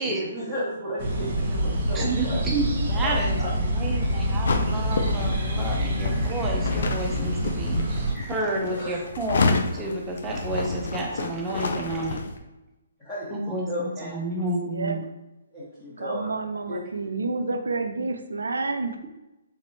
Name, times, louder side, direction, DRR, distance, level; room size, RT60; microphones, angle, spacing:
voice 1, 0.0-2.4 3.0-3.8 8.1-8.3 8.7-9.0 13.0-14.2 15.5-16.4 16.7-16.8, equal, 10° left, 1.4 m, -34 dB
sound 1, 1.0-8.1, equal, 40° right, 1.3 m, -26 dB
voice 2, 1.9-12.2 13.3-15.0, right 2 dB, 15° right, 0.8 m, -30 dB
sound 2, 4.5-12.4, left 3 dB, 55° left, 0.5 m, -29 dB
voice 3, 14.7-15.0 16.0-19.0, right 3 dB, 65° right, 0.5 m, -29 dB
4.1 x 3.7 x 3.0 m
figure-of-eight pair, 130°, 0 cm